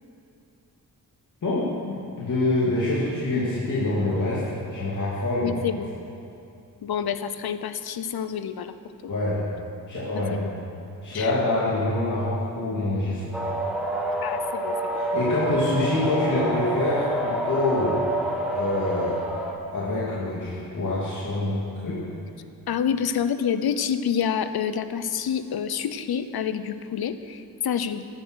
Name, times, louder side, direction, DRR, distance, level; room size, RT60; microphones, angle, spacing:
voice 1, 1.4-5.5 9.1-9.4 9.9-10.4 11.0-13.3 14.9-18.0 18.5-19.2 19.6-22.0, left 2 dB, 55° left, -8 dB, 2.8 m, -26 dB
voice 2, 5.4-5.9 6.8-8.7 9.0-9.1 10.3-10.5 11.1-11.3 14.2-15.0 22.7-28.1, left 8 dB, 90° left, 11 dB, 0.8 m, -28 dB
sound 1, 13.3-19.5, right 1 dB, ahead, 1.9 m, -28 dB
14.0 x 10.5 x 6.4 m, 2.7 s
wide cardioid pair, 130°, 36 cm